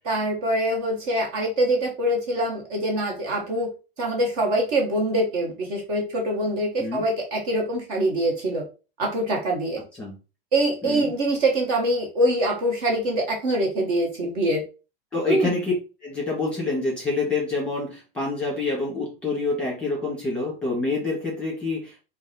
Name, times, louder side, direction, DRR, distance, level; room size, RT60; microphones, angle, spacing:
voice 1, 0.0-3.7 4.0-8.6 9.0-9.8 10.5-14.6 15.3-15.5, right 1 dB, 45° right, 0 dB, 1.2 m, -24 dB
voice 2, 10.8-11.1 15.1-15.7 16.0-22.0, left 3 dB, 5° left, -3 dB, 1.7 m, -27 dB
4.5 x 2.2 x 4.3 m, 0.32 s
supercardioid pair, 165°, 29 cm